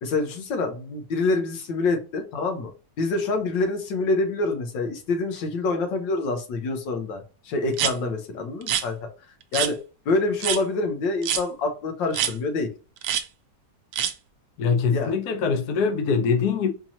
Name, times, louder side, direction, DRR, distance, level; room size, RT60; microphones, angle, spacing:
voice 1, 0.0-2.7 3.0-9.1 9.5-9.8 10.0-12.7 14.9-15.1, left 3 dB, 85° left, 1.5 m, -26 dB
sound 1, 7.7-7.9 8.6-8.8 9.5-9.7 10.4-10.6 11.2-11.4 12.1-12.3 13.0-13.2 13.9-14.1, right 9 dB, 80° right, 0.7 m, -25 dB
voice 2, 14.6-16.7, left 5 dB, 65° left, 1.1 m, -23 dB
4.4 x 2.9 x 2.7 m
omnidirectional pair, 1.9 m